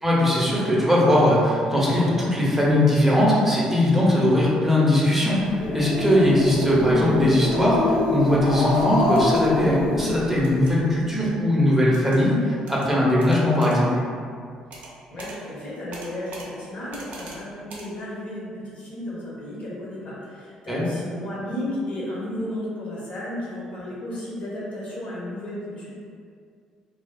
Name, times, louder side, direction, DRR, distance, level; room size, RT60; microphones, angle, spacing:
voice 1, 0.0-14.0 20.7-20.8, left 1 dB, 5° right, -6 dB, 0.8 m, -20 dB
Growling, 5.4-10.7, left 2 dB, 65° left, 0.3 m, -25 dB
sound 1, 9.1-9.4 10.4-10.7 11.9-12.2 12.7-12.9 13.2-13.8 14.7-14.9 15.2-15.4 15.9-16.5 16.9-17.4 17.7-17.9, right 2 dB, 55° right, 0.5 m, -41 dB
voice 2, 15.1-25.9, left 1 dB, 50° left, -7 dB, 0.9 m, -33 dB
2.6 x 2.3 x 2.3 m, 2.2 s
figure-of-eight pair, 50°, 3 cm